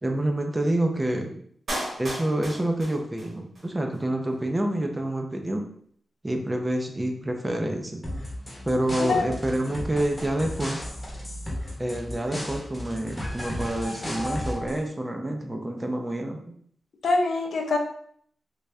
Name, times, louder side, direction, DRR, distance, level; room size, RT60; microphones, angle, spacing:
voice 1, 0.0-1.4 2.0-5.6 6.2-8.0 8.7-10.8 11.8-16.5, right 1 dB, 15° right, 3 dB, 0.4 m, -28 dB
Clapping, 1.7-3.7 3.9-4.0, right 1 dB, 50° right, 1.4 m, -34 dB
sound 1, 8.0-14.8, left 1 dB, 15° left, 0.8 m, -34 dB
voice 2, 9.0-9.4 17.0-17.8, left 3 dB, 70° left, 2 dB, 0.6 m, -24 dB
3.3 x 2.6 x 3.3 m, 0.63 s
wide cardioid pair, 140°, 0 cm